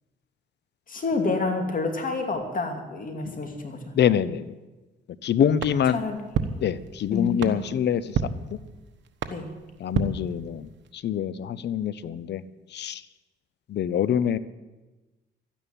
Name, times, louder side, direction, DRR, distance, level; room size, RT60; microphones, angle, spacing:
voice 1, 0.9-3.9 5.9-6.2 7.1-7.6 9.3-9.5, left 3 dB, 45° left, 5 dB, 2.7 m, -28 dB
voice 2, 3.9-4.5 5.2-6.0 6.6-8.2 8.5-8.6 9.8-12.4 12.7-13.0 13.7-14.4, left 9 dB, 60° left, 17 dB, 0.7 m, -25 dB
sound 1, 5.6-10.9, right 6 dB, 70° right, 1.2 m, -33 dB
12.5 x 10.0 x 9.1 m, 1.1 s
cardioid pair, 90°, 20 cm